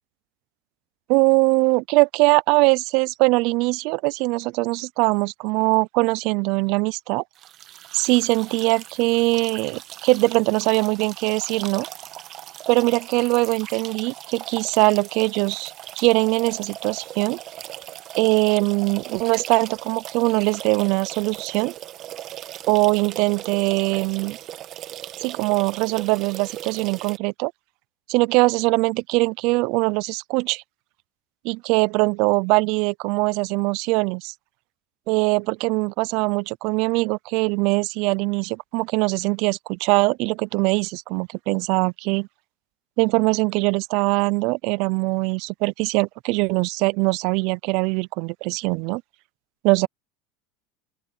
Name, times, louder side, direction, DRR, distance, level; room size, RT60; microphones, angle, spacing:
voice 1, 1.1-7.2 7.9-11.9 12.7-15.7 16.0-17.4 18.2-21.7 22.7-24.4 25.2-27.5 28.1-30.6 31.4-34.3 35.1-42.3 43.0-49.0 49.6-49.9, right 26 dB, 60° right, 0.4 m, -22 dB
sound 1, 7.3-27.2, right 12 dB, 45° right, 1.5 m, -38 dB
open air
supercardioid pair, 125°, 0 cm